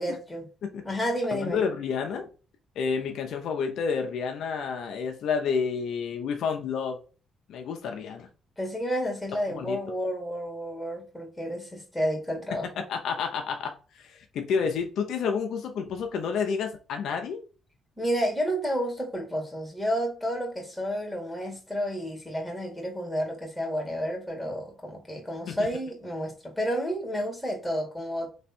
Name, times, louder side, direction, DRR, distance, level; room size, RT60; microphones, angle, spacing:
voice 1, 0.0-0.5 0.8-1.6 8.6-12.8 18.0-28.3, equal, 5° left, 2.1 m, -31 dB
voice 2, 1.3-2.2 2.8-7.0 7.5-8.3 9.5-9.8 12.8-17.4 25.5-25.6, left 6 dB, 75° left, 0.7 m, -30 dB
3.4 x 3.3 x 4.3 m
cardioid pair, 90°, 0 cm